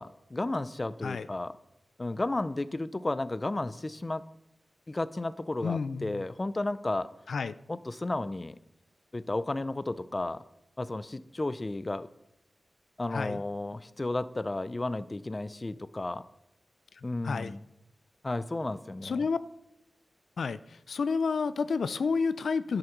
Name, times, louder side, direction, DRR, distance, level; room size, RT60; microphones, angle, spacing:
voice 1, 0.0-1.6 2.0-4.2 4.9-7.1 7.7-8.6 9.1-10.4 10.8-12.1 13.0-16.3 17.0-17.6 18.2-19.3, left 2 dB, 30° left, 15 dB, 0.5 m, -33 dB
voice 2, 5.6-6.2 7.3-7.5 13.1-13.4 17.2-17.5 19.0-19.4 20.4-22.8, left 5 dB, 85° left, 14 dB, 0.4 m, -30 dB
11.0 x 8.0 x 5.9 m, 0.84 s
wide cardioid pair, 80°, 0 cm